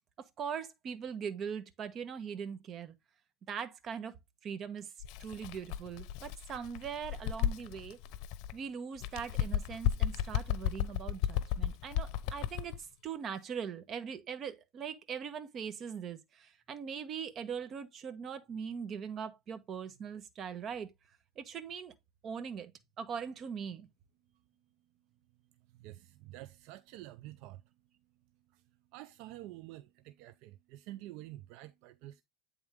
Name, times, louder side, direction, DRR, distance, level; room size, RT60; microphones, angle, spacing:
voice 1, 0.4-2.9 3.5-4.1 4.4-4.9 5.2-8.0 8.5-20.9 21.4-21.9 22.2-22.7 23.0-23.9, right 7 dB, 40° right, 1.2 m, -41 dB
Bird, 5.0-8.6 9.0-12.8, left 10 dB, 60° left, 0.7 m, -34 dB
voice 2, 25.7-27.6 28.5-28.6 28.9-32.2, right 15 dB, 65° right, 0.4 m, -48 dB
8.8 x 3.7 x 3.6 m
supercardioid pair, 115°, 0 cm